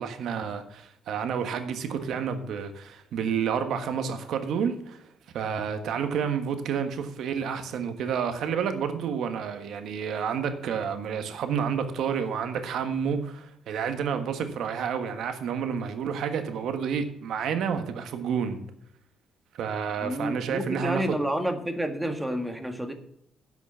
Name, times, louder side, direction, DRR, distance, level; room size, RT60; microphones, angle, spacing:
voice 1, 0.0-5.0 5.3-18.6 19.6-21.2, right 7 dB, 75° right, 8 dB, 1.5 m, -30 dB
voice 2, 20.0-22.9, equal, 10° right, 6 dB, 1.7 m, -29 dB
11.0 x 6.1 x 7.2 m, 0.76 s
cardioid pair, 90°, 0 cm